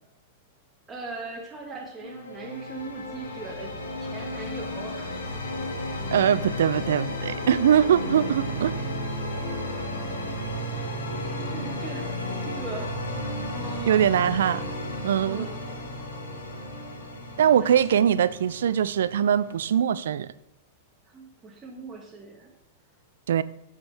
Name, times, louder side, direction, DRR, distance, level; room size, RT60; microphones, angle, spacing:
voice 1, 0.9-5.1 11.1-12.9 13.5-14.2 15.2-15.7 17.6-17.7 21.1-22.5, right 3 dB, 20° right, -1 dB, 1.5 m, -40 dB
sound 1, 2.0-19.8, left 1 dB, 85° left, 1.7 m, -33 dB
voice 2, 6.1-8.7 13.9-14.7 15.0-15.5 17.4-20.3 23.3-23.4, right 9 dB, 75° right, 17 dB, 0.3 m, -22 dB
7.7 x 6.4 x 3.4 m, 0.77 s
hypercardioid pair, 105°, 0 cm